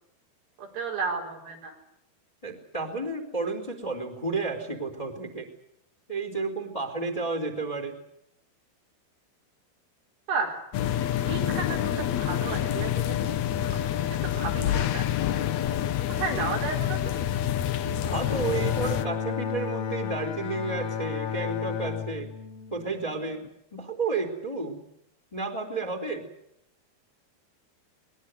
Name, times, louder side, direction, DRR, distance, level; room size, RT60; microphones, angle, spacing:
voice 1, 0.6-1.7 10.3-10.6 11.2-13.2 13.7-15.1 16.2-17.1, right 4 dB, 90° right, 0 dB, 6.6 m, -33 dB
voice 2, 2.4-5.4 6.1-8.0 16.2-16.5 18.0-22.3 22.7-23.4 23.7-24.8 25.3-26.2, right 3 dB, 10° left, 5 dB, 3.1 m, -32 dB
sound 1, 10.7-19.1, left 11 dB, 75° left, 1.7 m, -27 dB
Bowed string instrument, 18.0-23.5, left 7 dB, 50° left, 2.1 m, -33 dB
22.0 x 21.0 x 8.1 m, 0.76 s
omnidirectional pair, 4.6 m